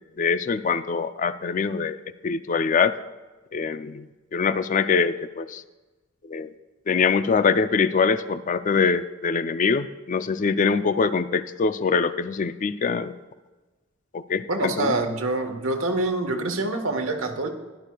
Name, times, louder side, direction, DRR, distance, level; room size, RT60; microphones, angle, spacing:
voice 1, 0.0-2.0 2.2-2.9 3.5-4.1 4.3-5.6 6.2-6.5 6.9-13.1 14.1-14.9, left 5 dB, 40° left, 12 dB, 0.4 m, -23 dB
voice 2, 14.5-17.5, right 2 dB, 85° right, 5 dB, 1.2 m, -26 dB
16.0 x 11.5 x 2.3 m, 1.2 s
head